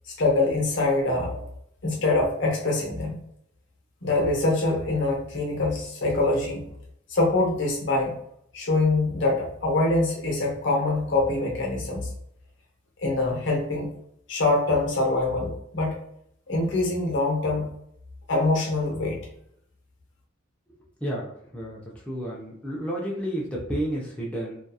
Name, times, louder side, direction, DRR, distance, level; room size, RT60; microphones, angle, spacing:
voice 1, 0.1-1.4 1.8-3.2 4.0-6.7 7.1-8.1 8.5-12.1 13.0-13.9 14.3-16.0 16.5-17.7 18.3-19.2, left 2 dB, 60° left, -1 dB, 0.8 m, -24 dB
voice 2, 21.0-21.8 22.1-24.6, right 1 dB, 5° left, -5 dB, 0.4 m, -31 dB
2.7 x 2.3 x 2.3 m, 0.72 s
head